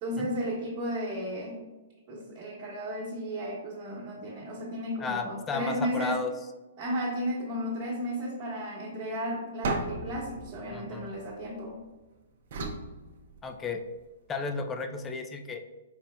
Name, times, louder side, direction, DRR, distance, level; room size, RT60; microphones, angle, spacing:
voice 1, 0.0-1.6 2.1-6.2 6.8-11.8, equal, 35° right, -8 dB, 1.1 m, -34 dB
voice 2, 5.0-6.3 10.7-11.1 13.4-13.8 14.3-15.6, left 4 dB, 15° left, 6 dB, 0.4 m, -33 dB
sound 1, 9.6-11.8 12.5-13.9, right 2 dB, 60° right, 0.6 m, -36 dB
4.3 x 3.8 x 2.3 m, 1.2 s
hypercardioid pair, 135°, 0 cm